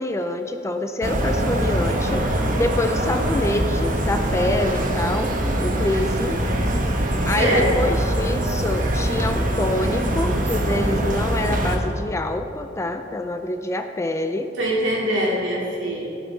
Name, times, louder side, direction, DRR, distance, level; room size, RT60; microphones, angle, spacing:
voice 1, 0.0-2.3 2.5-5.3 5.6-6.4 7.3-14.5, left 2 dB, 15° left, 7 dB, 0.4 m, -26 dB
sound 1, 1.0-11.8, right 1 dB, 45° right, 1.1 m, -23 dB
voice 2, 7.3-7.9 14.6-16.1, equal, 75° right, -4 dB, 2.5 m, -23 dB
15.5 x 6.3 x 4.0 m, 2.6 s
head